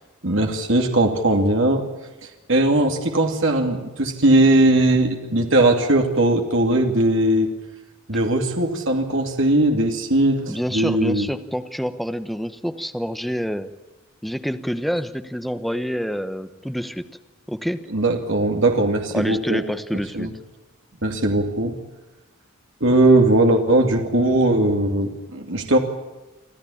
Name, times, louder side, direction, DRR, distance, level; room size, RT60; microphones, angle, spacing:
voice 1, 0.2-1.9 2.5-7.5 8.1-11.3 17.9-19.6 20.1-20.3 21.0-21.8 22.8-25.8, right 1 dB, 60° right, 3 dB, 2.6 m, -19 dB
voice 2, 10.5-13.7 14.2-17.1 17.5-17.8 19.1-20.3, equal, ahead, 9 dB, 1.0 m, -27 dB
26.5 x 14.5 x 8.7 m, 1.1 s
head